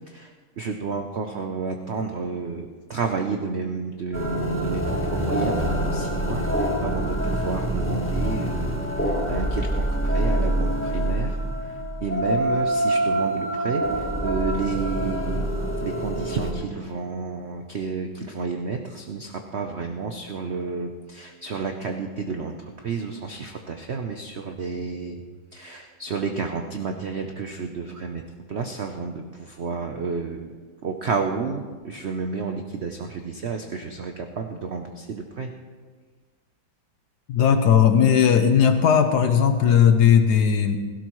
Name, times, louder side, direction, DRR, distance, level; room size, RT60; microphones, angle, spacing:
voice 1, 0.1-15.5 15.8-25.2 25.5-28.2 28.5-30.6 30.8-35.5, right 4 dB, 60° right, 4 dB, 0.7 m, -31 dB
sound 1, 4.1-16.5, right 1 dB, 10° left, 1.2 m, -25 dB
voice 2, 37.3-40.8, left 8 dB, 65° left, 7 dB, 1.2 m, -17 dB
16.5 x 16.5 x 3.1 m, 1.5 s
omnidirectional pair, 2.1 m